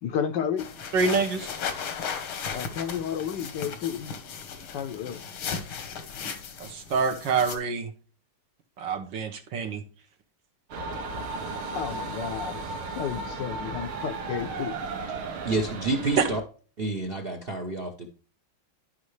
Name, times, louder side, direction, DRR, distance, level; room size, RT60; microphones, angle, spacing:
voice 1, 0.0-0.7 2.5-4.1 4.7-5.3 11.7-14.8 15.5-15.6, left 8 dB, 65° left, 1.2 m, -32 dB
sound 1, 0.6-7.6, left 6 dB, 85° left, 2.1 m, -36 dB
voice 2, 0.9-1.5 6.6-7.9 8.8-9.8 16.2-16.3, right 5 dB, 65° right, 1.7 m, -26 dB
sound 2, 10.7-16.4, right 3 dB, 85° right, 2.2 m, -35 dB
voice 3, 15.4-16.4 16.8-18.1, right 2 dB, 40° right, 0.8 m, -29 dB
12.5 x 5.6 x 3.2 m
omnidirectional pair, 2.3 m